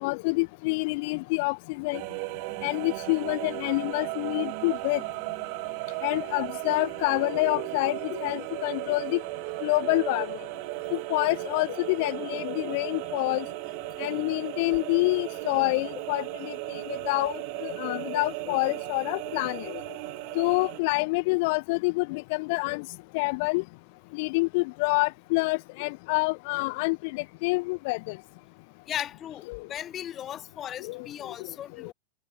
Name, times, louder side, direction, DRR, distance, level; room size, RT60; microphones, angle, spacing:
voice 1, 0.0-2.0 2.6-5.0 6.0-9.2 9.6-10.3 10.9-13.4 14.0-16.2 16.7-19.8 20.3-22.8 23.1-23.6 24.2-28.2 29.5-29.6 30.8-31.0, left 27 dB, 50° left, 1.5 m, -27 dB
sound 1, 1.9-20.8, right 40 dB or more, 45° right, 1.2 m, -36 dB
voice 2, 28.9-29.4 29.7-31.9, left 10 dB, 25° left, 3.0 m, -36 dB
supercardioid pair, 150°, 0 cm